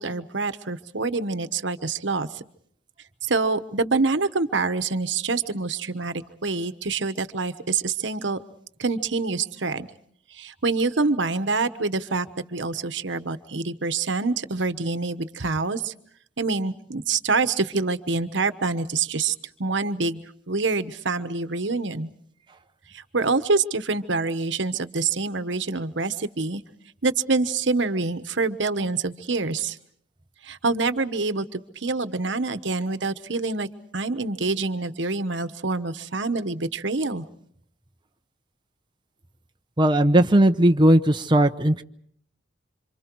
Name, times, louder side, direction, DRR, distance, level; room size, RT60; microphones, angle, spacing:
voice 1, 0.0-2.4 3.2-8.4 8.8-9.9 10.3-15.9 16.4-19.3 19.6-20.2 20.5-22.1 22.9-26.6 27.0-29.8 30.4-33.7 33.9-37.2, right 3 dB, 75° right, 11 dB, 1.2 m, -26 dB
voice 2, 39.8-41.8, right 1 dB, 25° right, 5 dB, 0.9 m, -18 dB
28.0 x 26.5 x 4.7 m, 0.66 s
head